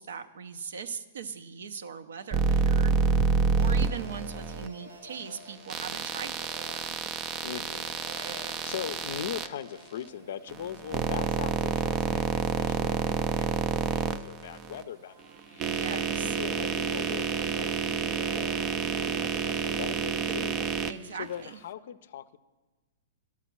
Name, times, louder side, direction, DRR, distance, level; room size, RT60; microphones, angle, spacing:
voice 1, 0.0-2.9 3.6-7.0 15.7-16.4 20.9-21.6, right 6 dB, 75° right, 10 dB, 0.6 m, -40 dB
sound 1, 2.3-4.7 5.7-9.5 10.5-14.8 15.4-20.9, right 5 dB, 35° right, 0.4 m, -28 dB
sound 2, 3.6-13.2 13.9-18.6, right 1 dB, 90° right, 2.1 m, -50 dB
voice 2, 7.4-15.2 15.5-22.4, left 10 dB, 65° left, 14 dB, 0.4 m, -41 dB
11.5 x 5.9 x 6.0 m, 1.2 s
hypercardioid pair, 120°, 0 cm